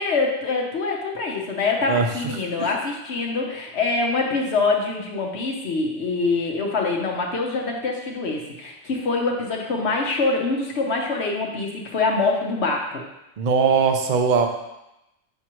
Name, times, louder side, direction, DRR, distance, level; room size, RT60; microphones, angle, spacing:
voice 1, 0.0-13.0, left 3 dB, 65° left, 0 dB, 1.1 m, -24 dB
voice 2, 13.4-14.5, right 5 dB, 50° right, 5 dB, 0.6 m, -19 dB
5.9 x 5.8 x 3.0 m, 0.91 s
omnidirectional pair, 1.2 m